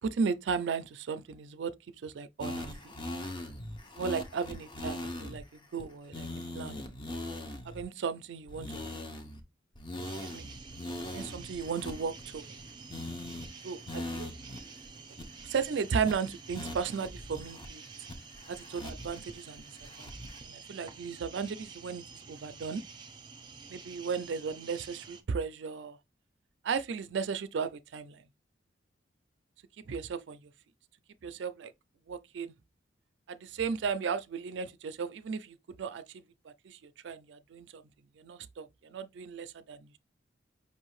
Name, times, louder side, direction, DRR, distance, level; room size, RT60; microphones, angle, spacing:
voice 1, 0.0-1.7 2.0-2.9 4.0-5.4 5.7-6.3 6.5-6.8 7.7-8.8 10.2-10.5 11.1-12.5 13.6-14.3 15.4-17.8 18.5-19.6 20.0-20.1 20.4-22.8 23.7-26.0 26.6-28.2 29.9-30.4 31.2-31.7 32.1-32.5 33.3-37.8 38.2-40.0, right 5 dB, 70° right, 0.4 m, -35 dB
sound 1, 2.4-5.4 5.8-5.9 6.1-7.8 8.5-9.4 9.7-12.6 12.9-13.5 13.9-14.6 14.8-14.9 15.2-15.6 16.0-16.1 16.5-17.7 18.1-19.2 19.6-20.4, left 1 dB, 25° left, 0.7 m, -41 dB
sound 2, 10.0-25.2, right 5 dB, 25° right, 0.6 m, -49 dB
5.5 x 2.7 x 3.1 m
head